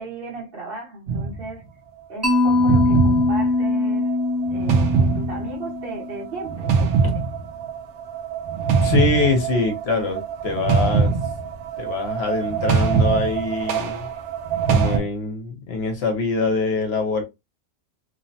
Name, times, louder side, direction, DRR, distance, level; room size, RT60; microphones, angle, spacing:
voice 1, 0.0-1.6 2.1-4.1 4.5-6.9, right 3 dB, 55° right, 1.0 m, -35 dB
sound 1, 1.1-1.5 2.5-15.0, right 5 dB, 75° right, 0.9 m, -23 dB
Mallet percussion, 2.2-6.2, left 2 dB, 20° right, 0.5 m, -22 dB
voice 2, 8.8-11.1 11.8-14.1 14.7-17.2, left 3 dB, 60° left, 1.0 m, -24 dB
3.1 x 2.0 x 2.7 m
omnidirectional pair, 1.3 m